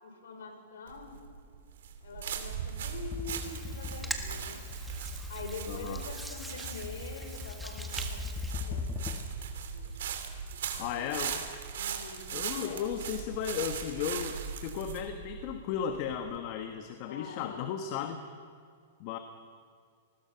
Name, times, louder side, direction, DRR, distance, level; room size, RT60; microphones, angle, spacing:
voice 1, 0.0-1.2 2.0-4.6 5.3-8.2 8.4-9.1 9.7-9.9 10.5-11.1 11.7-12.8 17.0-17.7, left 4 dB, 85° left, 3 dB, 5.5 m, -45 dB
sound 1, 0.9-16.4, right 8 dB, 75° right, 3.1 m, -39 dB
sound 2, 3.1-9.5, left 5 dB, 20° left, 1.4 m, -40 dB
Hands, 3.4-8.5, right 1 dB, 5° right, 1.7 m, -44 dB
voice 2, 5.7-6.0 10.8-11.5 12.3-18.2 19.0-19.2, left 8 dB, 45° left, 6 dB, 1.4 m, -35 dB
29.0 x 20.5 x 5.8 m, 2.2 s
hypercardioid pair, 140°, 0 cm